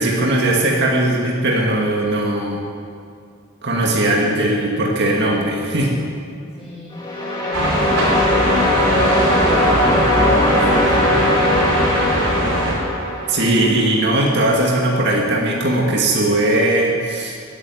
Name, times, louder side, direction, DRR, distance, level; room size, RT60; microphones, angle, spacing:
voice 1, 0.0-2.6 3.6-5.9 13.3-17.4, right 1 dB, 55° right, -2 dB, 2.2 m, -18 dB
voice 2, 6.6-7.0 7.4-10.1 10.5-11.4, left 1 dB, ahead, -12 dB, 3.8 m, -35 dB
sound 1, 6.9-13.9, left 1 dB, 20° left, 2.7 m, -19 dB
sound 2, 7.5-12.8, equal, 85° right, 4.8 m, -21 dB
15.0 x 9.4 x 9.7 m, 2.4 s
head